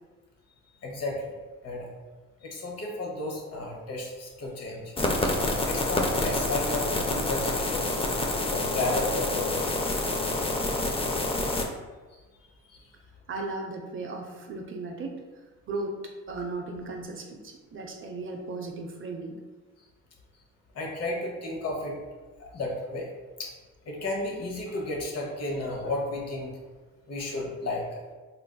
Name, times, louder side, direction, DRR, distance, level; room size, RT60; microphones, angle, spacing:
voice 1, 0.8-1.4 1.6-1.9 2.4-4.9 5.2-5.3 5.6-8.0 8.4-9.7 10.2-10.3 10.8-10.9 12.1-12.2 12.7-13.0 19.8-19.9 20.7-22.0 22.4-23.1 23.4-23.5 23.8-26.5 27.1-28.0, left 2 dB, 55° left, -1 dB, 0.9 m, -33 dB
sound 1, 5.0-11.6, left 2 dB, 20° left, 0.4 m, -27 dB
voice 2, 13.3-15.2 15.7-19.4, right 3 dB, 45° right, 2 dB, 0.5 m, -36 dB
3.8 x 2.5 x 2.2 m, 1.3 s
cardioid pair, 90°, 30 cm